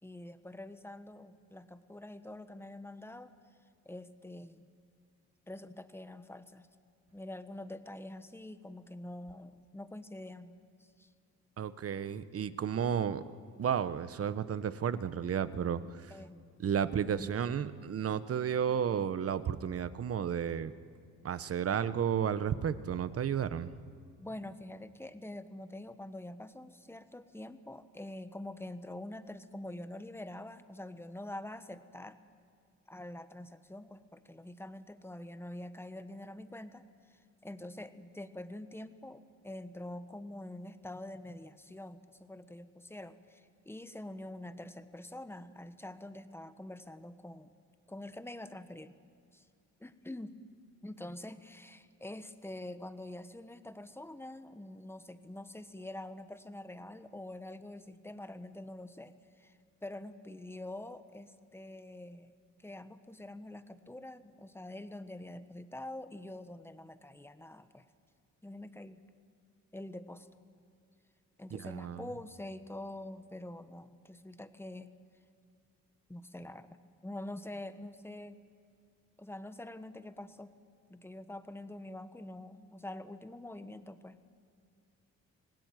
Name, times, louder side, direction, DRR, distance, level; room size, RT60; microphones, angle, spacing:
voice 1, 0.0-3.3 3.8-4.7 5.5-6.7 7.1-11.1 12.0-12.2 16.1-16.4 17.1-17.3 23.9-32.2 32.9-36.8 37.1-47.6 47.9-49.0 49.3-49.4 49.8-50.4 50.8-62.3 62.6-67.8 68.4-69.0 69.7-70.3 71.4-74.9 76.1-76.8 77.0-78.4 79.2-80.5 80.9-84.2, left 1 dB, 10° left, 11 dB, 1.3 m, -46 dB
voice 2, 11.6-13.2 13.6-16.1 16.6-20.7 21.2-23.7 71.5-72.1, right 8 dB, 50° right, 14 dB, 1.1 m, -32 dB
26.0 x 18.5 x 9.3 m, 2.3 s
cardioid pair, 90°, 30 cm